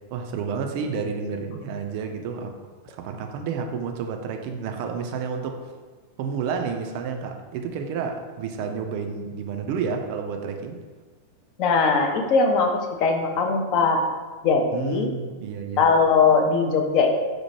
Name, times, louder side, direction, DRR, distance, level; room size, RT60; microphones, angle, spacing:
voice 1, 0.1-2.5 2.8-5.5 6.2-10.8 14.7-15.8, right 6 dB, 45° right, 4 dB, 0.3 m, -30 dB
voice 2, 11.6-14.0 14.4-15.1 15.8-17.1, left 4 dB, 40° left, 3 dB, 0.4 m, -20 dB
4.4 x 2.1 x 3.0 m, 1.4 s
figure-of-eight pair, 90°, 0 cm